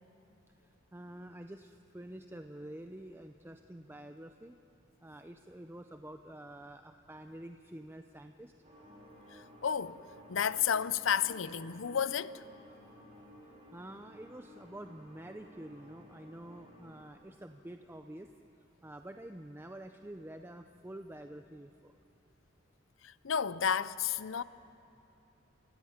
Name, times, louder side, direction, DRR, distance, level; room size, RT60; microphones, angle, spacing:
voice 1, 0.9-4.6 5.0-8.5 13.7-18.3 18.8-21.9, right 1 dB, 10° right, 0.6 m, -48 dB
sound 1, 8.6-17.1, left 1 dB, 30° right, 5.4 m, -55 dB
voice 2, 9.3-10.0 10.3-12.4 23.0-24.4, left 8 dB, 70° left, 0.6 m, -32 dB
29.0 x 16.5 x 9.5 m
head